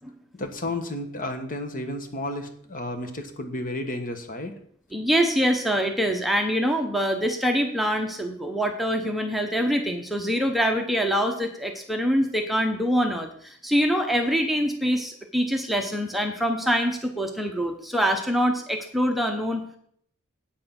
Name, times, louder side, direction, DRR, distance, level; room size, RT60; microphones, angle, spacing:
voice 1, 0.3-4.6, left 1 dB, 40° left, 6 dB, 1.3 m, -32 dB
voice 2, 4.9-19.8, equal, ahead, 3 dB, 0.9 m, -24 dB
8.7 x 7.6 x 5.9 m, 0.63 s
head